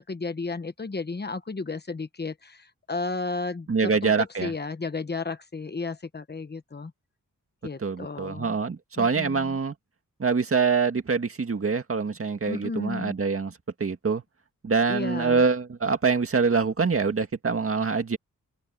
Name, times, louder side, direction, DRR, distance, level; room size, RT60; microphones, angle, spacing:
voice 1, 0.0-6.9 7.6-8.6 9.0-9.6 12.5-13.1 14.9-15.4, left 3 dB, 30° left, 1.1 m, -33 dB
voice 2, 3.7-4.5 7.8-9.7 10.2-13.5 13.8-14.2 14.6-18.2, right 5 dB, 45° right, 2.0 m, -25 dB
open air
wide cardioid pair, 140°, 32 cm